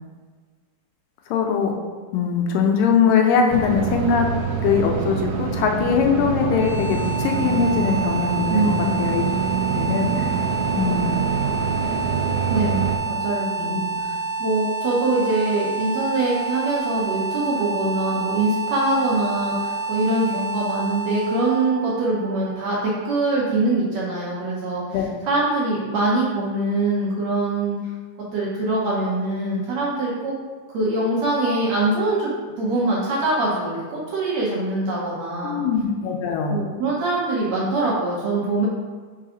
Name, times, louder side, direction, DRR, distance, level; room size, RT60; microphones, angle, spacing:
voice 1, 1.3-1.7 2.1-4.3 4.6-8.7 9.0-9.3 9.7-10.3 10.7-11.2 13.6-13.8 24.9-25.0 35.4-36.6, left 6 dB, 85° left, 2 dB, 2.4 m, -21 dB
sound 1, 3.5-13.0, right 6 dB, 80° right, 2.2 m, -25 dB
sound 2, 6.4-23.3, right 3 dB, 70° left, 2.0 m, -29 dB
voice 2, 8.5-8.9 12.5-24.8 25.2-27.8 28.3-30.3 30.7-32.3 32.6-35.6 36.5-38.7, right 2 dB, 65° right, -5 dB, 1.9 m, -23 dB
4.8 x 4.7 x 5.0 m, 1.5 s
omnidirectional pair, 3.8 m